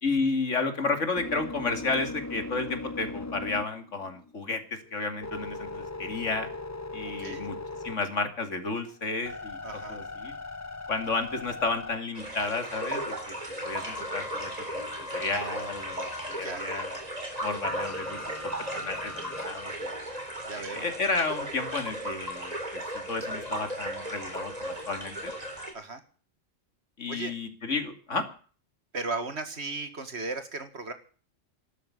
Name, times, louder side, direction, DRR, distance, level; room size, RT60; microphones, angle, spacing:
voice 1, 0.0-6.5 6.9-7.5 7.8-9.6 9.9-10.3 10.9-13.3 13.6-17.0 17.4-18.2 18.7-19.9 20.5-25.3 27.0-28.3, left 3 dB, 75° left, 7 dB, 2.9 m, -32 dB
sound 1, 1.1-4.4 4.8-8.3 8.8-12.5 13.6-16.4 17.6-19.5, left 3 dB, 15° left, 0.6 m, -40 dB
voice 2, 7.0-7.5 9.6-10.0 16.4-16.6 20.5-20.9 25.7-26.0 27.1-27.3 28.9-30.9, right 3 dB, 55° right, 9 dB, 2.2 m, -36 dB
sound 2, 12.1-25.7, right 1 dB, 30° right, 3.9 m, -36 dB
13.0 x 12.5 x 8.3 m, 0.41 s
omnidirectional pair, 1.3 m